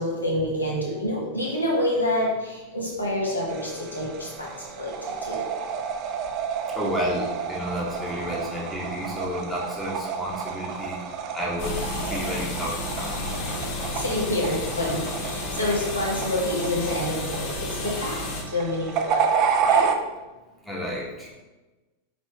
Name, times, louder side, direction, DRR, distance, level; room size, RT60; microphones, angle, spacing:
voice 1, 0.0-4.5 4.8-4.9 5.2-5.4 13.9-17.5 17.8-18.2 18.5-19.2 19.7-19.9, left 1 dB, 80° left, -3 dB, 1.1 m, -27 dB
sound 1, 3.5-20.0, right 6 dB, 40° right, 0.4 m, -30 dB
voice 2, 6.7-11.0 11.3-13.3 20.6-21.3, equal, ahead, -6 dB, 1.3 m, -31 dB
sound 2, 11.6-18.4, left 2 dB, 45° left, 1.5 m, -32 dB
5.2 x 3.0 x 3.4 m, 1.2 s
figure-of-eight pair, 90°, 0 cm